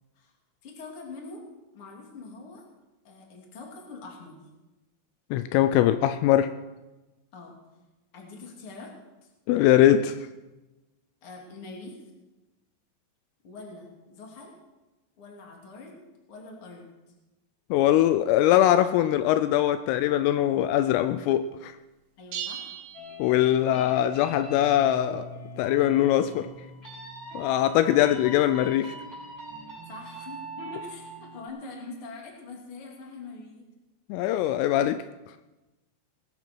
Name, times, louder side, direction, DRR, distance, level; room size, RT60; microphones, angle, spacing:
voice 1, 0.6-1.4 1.7-2.6 3.0-4.4 7.3-7.6 8.1-9.0 9.2-9.3 11.2-12.0 13.4-14.5 15.2-16.9 22.2-22.7 29.9-33.7, left 3 dB, 35° left, 0 dB, 2.7 m, -44 dB
voice 2, 5.3-6.5 9.5-10.2 17.7-21.7 23.2-25.3 25.6-26.5 27.3-28.9 34.1-35.0, left 12 dB, 85° left, 11 dB, 3.2 m, -22 dB
sound 1, 22.3-23.9, right 9 dB, 75° right, 4.4 m, -38 dB
sound 2, 22.9-31.5, equal, 5° left, 6.5 m, -42 dB
19.5 x 12.5 x 4.6 m, 1.1 s
omnidirectional pair, 5.9 m